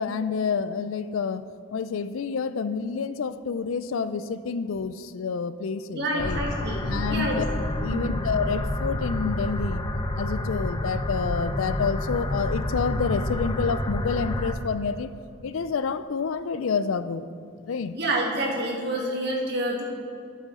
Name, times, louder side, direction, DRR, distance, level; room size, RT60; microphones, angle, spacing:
voice 1, 0.0-1.4 1.7-6.4 6.9-7.4 7.8-9.8 10.2-15.1 15.4-17.3 17.7-17.9, left 5 dB, 75° left, 14 dB, 0.4 m, -28 dB
voice 2, 5.9-7.4 7.9-8.2 17.9-19.8, right 1 dB, 50° right, -2 dB, 1.6 m, -28 dB
sound 1, 6.2-14.5, left 1 dB, 20° left, 0.5 m, -29 dB
11.5 x 8.3 x 3.8 m, 2.4 s
head